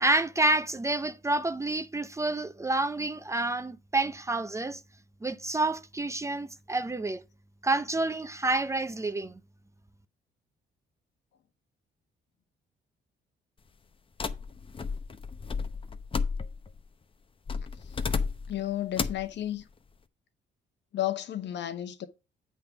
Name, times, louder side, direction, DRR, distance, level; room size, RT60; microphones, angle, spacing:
voice 1, 0.0-4.8 5.2-7.2 7.6-9.3, right 2 dB, 15° right, 0.6 m, -28 dB
sound 1, 14.2-16.8 17.5-18.6 19.0-19.3, left 5 dB, 30° left, 0.7 m, -32 dB
voice 2, 18.5-19.7 20.9-22.1, left 12 dB, 70° left, 1.0 m, -33 dB
8.5 x 3.7 x 5.9 m
cardioid pair, 100°, 19 cm